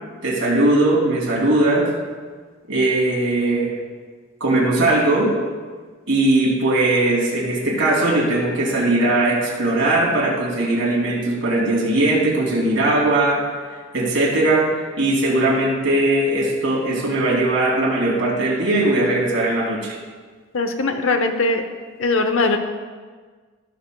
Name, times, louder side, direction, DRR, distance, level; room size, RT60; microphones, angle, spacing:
voice 1, 0.2-1.9 2.7-3.7 4.4-5.4 6.1-13.4 13.9-14.7 15.0-19.9, right 2 dB, 75° right, -4 dB, 2.9 m, -19 dB
voice 2, 20.5-21.6 22.0-22.6, left 3 dB, 90° left, 6 dB, 0.8 m, -20 dB
16.5 x 6.7 x 2.3 m, 1.5 s
head